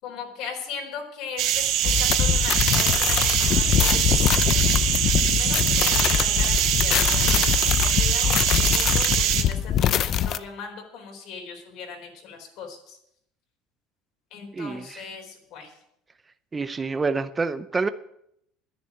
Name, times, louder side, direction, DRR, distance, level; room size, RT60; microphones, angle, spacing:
voice 1, 0.0-1.5 1.8-4.8 5.1-13.0 14.3-15.7, left 6 dB, 60° left, 2 dB, 4.1 m, -39 dB
sound 1, 1.4-9.4, right 11 dB, 60° right, 1.5 m, -23 dB
sound 2, 1.8-10.4, left 10 dB, 45° left, 0.6 m, -23 dB
voice 2, 14.5-15.1 16.5-17.9, right 4 dB, 15° right, 12 dB, 0.6 m, -27 dB
10.5 x 10.0 x 8.1 m, 0.76 s
cardioid pair, 135°, 0 cm